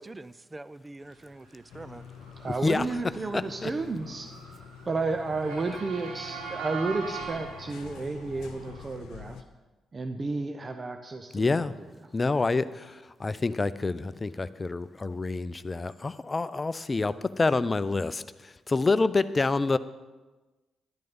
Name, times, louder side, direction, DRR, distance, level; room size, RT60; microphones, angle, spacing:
voice 1, 0.0-2.0, right 2 dB, 25° right, 16 dB, 0.5 m, -45 dB
Motor vehicle (road) / Siren, 1.5-8.8, right 5 dB, 75° right, 2.4 m, -42 dB
sound 1, 1.7-9.4, left 7 dB, 70° left, 0.7 m, -47 dB
voice 2, 2.4-4.3 4.9-9.4 9.9-12.1, right 3 dB, 40° right, 7 dB, 0.9 m, -32 dB
voice 3, 3.3-3.7 11.3-11.7 12.1-19.8, left 3 dB, 30° left, 15 dB, 0.6 m, -27 dB
11.5 x 11.0 x 5.4 m, 1.2 s
hypercardioid pair, 40°, 0 cm